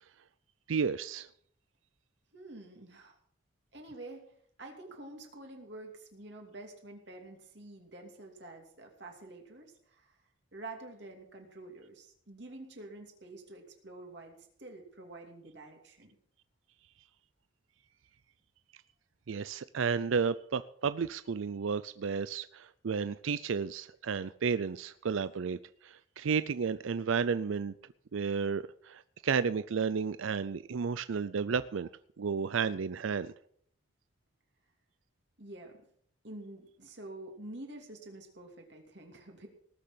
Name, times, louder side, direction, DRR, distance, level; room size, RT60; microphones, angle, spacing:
voice 1, 0.7-1.3 19.3-27.7 28.1-31.9 32.2-33.3, right 6 dB, 75° right, 14 dB, 0.5 m, -32 dB
voice 2, 2.3-3.2 3.7-10.2 10.5-16.2 35.4-35.8 36.2-39.5, right 2 dB, 55° right, 2 dB, 2.8 m, -48 dB
19.0 x 6.7 x 7.6 m, 0.64 s
head